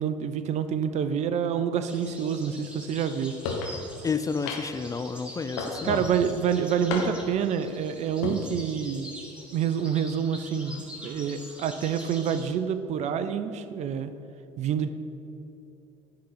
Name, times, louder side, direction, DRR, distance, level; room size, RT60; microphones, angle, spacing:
voice 1, 0.0-3.3 5.8-9.1 9.5-14.1 14.6-14.9, right 7 dB, 45° right, 11 dB, 0.6 m, -27 dB
sound 1, 1.9-12.5, equal, 5° right, 1.9 m, -45 dB
sound 2, 3.4-3.7 4.5-4.9 5.6-6.1 6.9-7.4 8.1-8.4, left 5 dB, 70° left, 1.1 m, -32 dB
voice 2, 4.0-6.1, left 5 dB, 20° left, 10 dB, 0.4 m, -30 dB
10.0 x 3.9 x 7.2 m, 2.9 s
hypercardioid pair, 65°, 17 cm